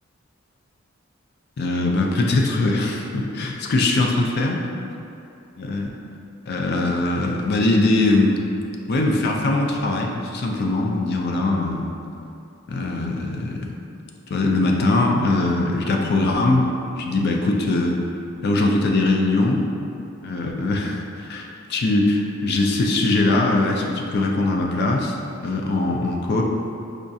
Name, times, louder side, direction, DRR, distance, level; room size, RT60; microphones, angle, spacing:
voice 1, 1.6-4.6 5.6-5.9 6.5-8.4 8.9-11.8 12.7-13.7 14.3-16.7 17.0-17.9 18.4-19.6 20.2-26.4, left 2 dB, 50° left, 0 dB, 0.4 m, -21 dB
4.9 x 2.3 x 2.6 m, 2.6 s
head